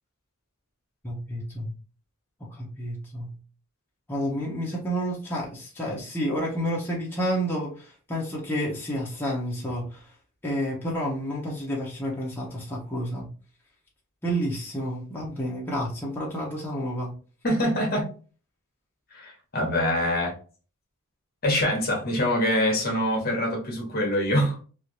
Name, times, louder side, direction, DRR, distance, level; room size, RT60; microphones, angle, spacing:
voice 1, 1.0-1.7 2.4-3.3 4.1-10.0 10.4-13.3 14.2-17.1, equal, 10° left, 0.9 m, -30 dB
voice 2, 17.4-18.1 19.1-20.3 21.4-24.6, left 1 dB, 45° left, 1.2 m, -24 dB
3.5 x 2.6 x 2.9 m
head